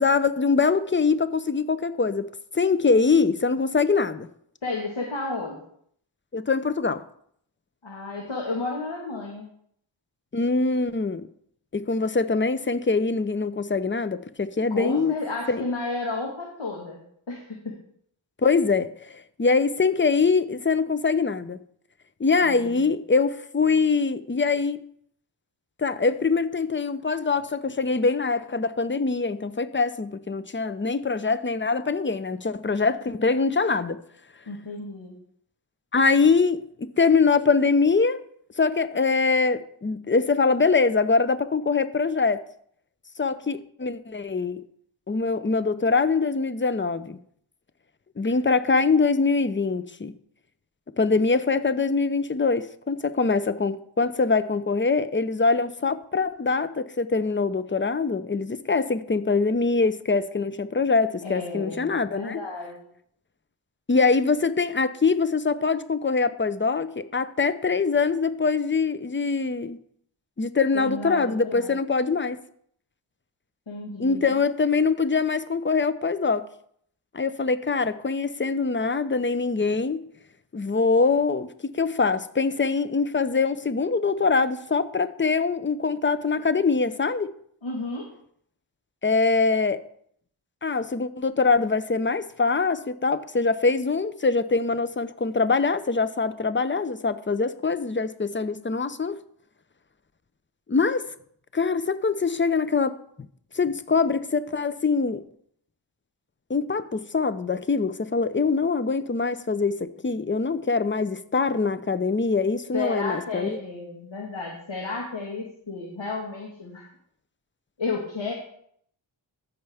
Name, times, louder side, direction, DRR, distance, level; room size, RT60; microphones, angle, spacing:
voice 1, 0.0-2.3 2.5-4.3 6.3-7.0 10.3-11.3 11.7-15.2 15.5-15.6 18.4-21.6 22.2-24.8 25.8-34.0 35.9-38.2 38.6-42.4 43.2-44.6 45.1-47.2 48.2-50.1 51.0-62.4 63.9-69.8 70.4-72.4 74.0-76.4 77.1-80.1 80.5-81.5 81.7-87.3 89.0-89.8 90.6-99.2 100.7-101.1 101.5-102.9 103.5-105.2 106.5-113.6, left 4 dB, 25° left, 0.6 m, -23 dB
voice 2, 4.6-5.6 7.8-9.5 14.7-17.0 17.3-17.8 22.4-22.8 34.5-35.2 61.2-62.9 70.7-71.8 73.7-74.4 87.6-88.1 112.7-116.8 117.8-118.3, left 3 dB, 65° left, 1.6 m, -32 dB
14.5 x 5.7 x 3.5 m
wide cardioid pair, 45°, 48 cm